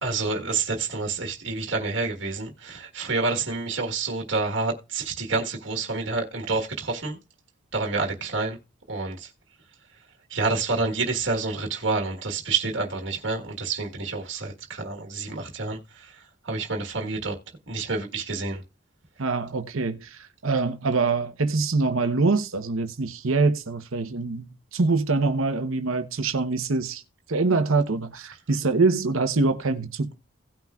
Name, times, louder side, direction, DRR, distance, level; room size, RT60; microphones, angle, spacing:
voice 1, 0.0-7.2 7.7-8.6 8.9-9.3 10.3-17.4 17.7-18.6, right 3 dB, 60° right, 1.5 m, -28 dB
voice 2, 19.2-27.0 27.3-30.1, right 3 dB, 80° right, 0.9 m, -24 dB
17.5 x 5.8 x 2.4 m
head